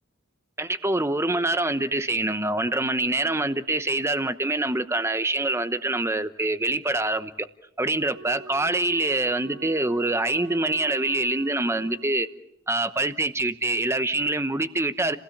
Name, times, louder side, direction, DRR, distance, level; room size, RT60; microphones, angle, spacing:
voice 1, 0.6-7.5 7.8-12.3 12.7-15.2, right 2 dB, 15° right, 0.9 m, -25 dB
Wind instrument woodwind instrument, 8.1-12.5, right 5 dB, 60° right, 1.5 m, -45 dB
30.0 x 16.5 x 7.3 m
head